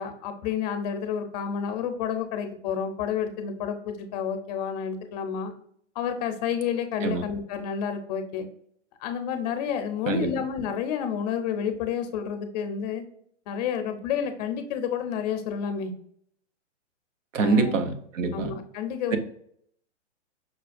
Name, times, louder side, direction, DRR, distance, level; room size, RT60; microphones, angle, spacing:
voice 1, 0.0-5.5 6.0-8.5 9.0-13.0 13.5-15.9 17.4-17.7 18.3-19.2, left 7 dB, 35° left, 8 dB, 0.5 m, -30 dB
voice 2, 17.3-18.5 19.1-19.2, right 4 dB, 90° right, 7 dB, 0.8 m, -25 dB
5.7 x 2.2 x 2.5 m, 0.66 s
hypercardioid pair, 135°, 37 cm